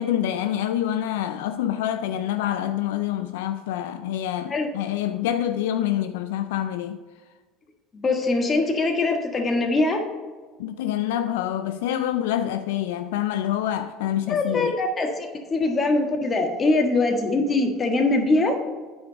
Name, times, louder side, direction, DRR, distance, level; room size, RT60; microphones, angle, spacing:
voice 1, 0.0-7.0 10.6-14.7, left 11 dB, 80° left, 0.4 m, -26 dB
voice 2, 7.9-10.1 14.3-18.6, left 2 dB, 30° left, 1.6 m, -22 dB
9.3 x 4.9 x 5.2 m
hypercardioid pair, 85°, 0 cm